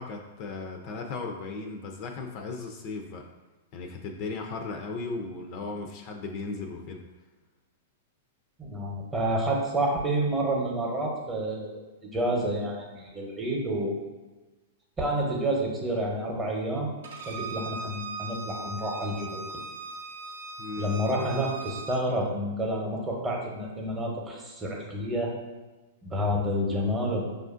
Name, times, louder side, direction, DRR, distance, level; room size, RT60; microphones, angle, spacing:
voice 1, 0.0-3.3 3.7-7.0 20.6-20.9, left 3 dB, 45° left, 3 dB, 0.4 m, -36 dB
voice 2, 8.6-11.8 12.1-13.9 15.0-16.9 17.3-19.4 20.8-25.3 26.0-27.3, right 1 dB, 20° right, -1 dB, 0.8 m, -29 dB
Bowed string instrument, 17.0-22.0, right 3 dB, 80° right, 0.7 m, -39 dB
4.8 x 2.5 x 2.5 m, 1.2 s
hypercardioid pair, 120°, 0 cm